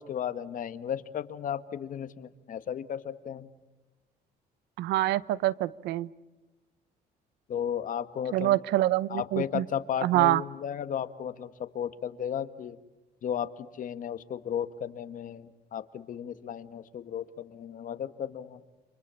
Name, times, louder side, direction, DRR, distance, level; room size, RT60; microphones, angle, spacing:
voice 1, 0.0-3.5 7.5-8.6 9.1-12.8 13.2-18.6, left 9 dB, 50° left, 11 dB, 1.7 m, -34 dB
voice 2, 4.8-6.1 8.3-9.6 10.0-10.4, right 15 dB, 85° right, 20 dB, 0.8 m, -25 dB
29.5 x 27.5 x 7.1 m, 1.1 s
cardioid pair, 110°, 17 cm